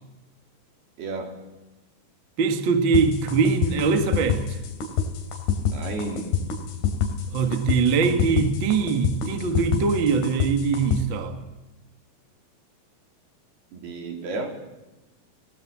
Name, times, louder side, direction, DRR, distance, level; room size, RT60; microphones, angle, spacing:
voice 1, 1.0-1.4 5.6-6.4 13.7-14.5, right 3 dB, 70° right, 5.4 m, -32 dB
voice 2, 2.4-4.6 7.3-11.4, right 5 dB, 45° right, 1.6 m, -22 dB
sound 1, 2.9-11.0, left 7 dB, 90° left, 5.0 m, -26 dB
21.5 x 19.0 x 7.4 m
omnidirectional pair, 4.8 m